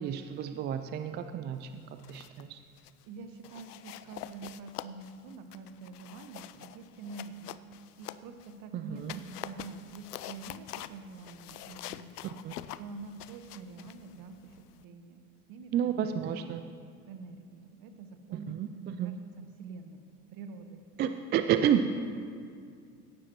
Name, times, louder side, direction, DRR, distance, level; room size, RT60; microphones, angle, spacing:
voice 1, 0.0-2.6 8.7-9.1 12.4-12.5 15.7-16.6 18.3-19.1 21.0-22.0, right 9 dB, 25° right, 9 dB, 0.4 m, -31 dB
sound 1, 1.8-2.5 2.8-3.0 3.4-8.6 9.0-14.9, left 12 dB, 75° left, 0.6 m, -46 dB
voice 2, 3.1-7.6 8.0-12.4 12.8-15.2 15.5-16.2 16.8-19.2 19.6-20.0 20.3-20.8, right 4 dB, 45° right, 7 dB, 1.4 m, -46 dB
17.0 x 12.0 x 3.1 m, 2.3 s
figure-of-eight pair, 75°, 46 cm